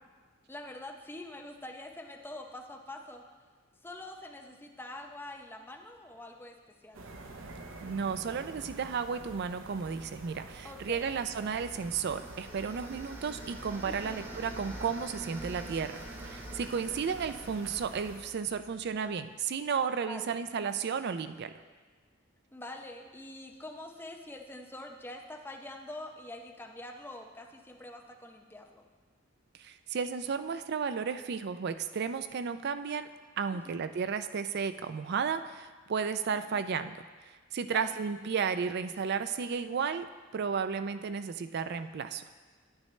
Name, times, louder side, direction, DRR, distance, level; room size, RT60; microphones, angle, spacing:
voice 1, 0.5-3.2 3.8-7.0 10.6-11.1 13.8-14.3 16.9-17.0 20.1-20.3 22.5-28.8 33.5-33.8 36.5-36.6 37.7-37.9, left 1 dB, 10° left, 2 dB, 0.7 m, -45 dB
sound 1, 6.9-18.2, right 2 dB, 80° right, 0.8 m, -47 dB
voice 2, 7.8-21.5 29.6-33.1 33.4-37.0 37.2-40.1 40.3-42.2, right 6 dB, 55° right, 11 dB, 0.4 m, -33 dB
sound 2, 11.1-19.0, right 1 dB, 10° right, 1.0 m, -47 dB
9.6 x 9.5 x 3.2 m, 1.4 s
head